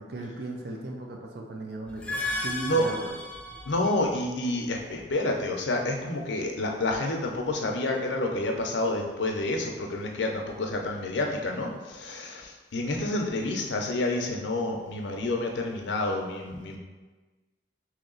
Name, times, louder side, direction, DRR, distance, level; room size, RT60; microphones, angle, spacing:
voice 1, 0.0-3.2, right 2 dB, 60° right, 1 dB, 0.6 m, -37 dB
sound 1, 1.9-4.1, left 2 dB, 5° left, 0.3 m, -34 dB
voice 2, 3.7-16.8, left 2 dB, 85° left, 2 dB, 0.6 m, -29 dB
3.1 x 2.9 x 3.8 m, 1.3 s
head